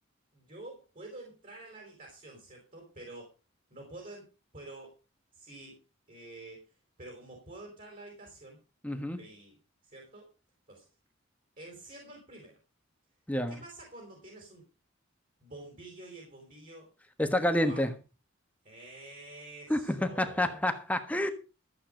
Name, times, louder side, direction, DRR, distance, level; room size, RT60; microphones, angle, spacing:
voice 1, 0.3-3.3 3.7-4.3 4.5-4.9 5.3-5.8 6.1-6.6 7.0-8.6 8.9-9.5 9.8-10.3 10.7-10.9 11.6-12.6 13.5-14.6 15.4-16.9 17.5-17.9 18.6-20.6, right 2 dB, 40° right, 4.6 m, -48 dB
voice 2, 8.8-9.2 13.3-13.6 17.2-17.9 19.7-21.3, left 1 dB, 5° left, 1.3 m, -29 dB
14.5 x 8.5 x 5.1 m
head